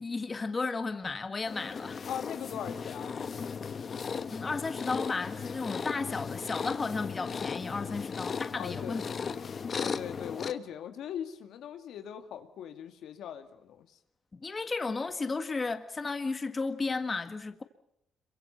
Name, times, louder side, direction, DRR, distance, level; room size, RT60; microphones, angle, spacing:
voice 1, 0.0-2.0 4.3-9.3 14.3-17.6, left 3 dB, 30° left, 1.8 m, -34 dB
sound 1, 1.5-10.5, left 6 dB, 45° left, 1.2 m, -36 dB
voice 2, 2.1-3.6 8.5-9.1 9.7-13.9, left 9 dB, 80° left, 2.2 m, -40 dB
27.0 x 23.5 x 5.7 m
cardioid pair, 90°, 0 cm